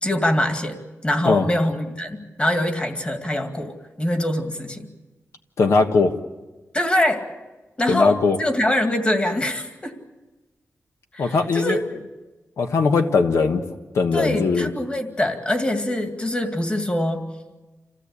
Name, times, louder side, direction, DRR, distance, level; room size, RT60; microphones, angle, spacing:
voice 1, 0.0-4.9 6.7-7.3 7.8-9.9 11.1-11.8 14.1-17.3, left 1 dB, 20° left, 5 dB, 2.2 m, -24 dB
voice 2, 5.6-6.1 7.9-8.4 11.2-11.8 12.6-13.6 13.9-14.7, left 4 dB, 75° left, 4 dB, 1.3 m, -19 dB
27.5 x 16.5 x 8.4 m, 1.2 s
wide cardioid pair, 130°, 5 cm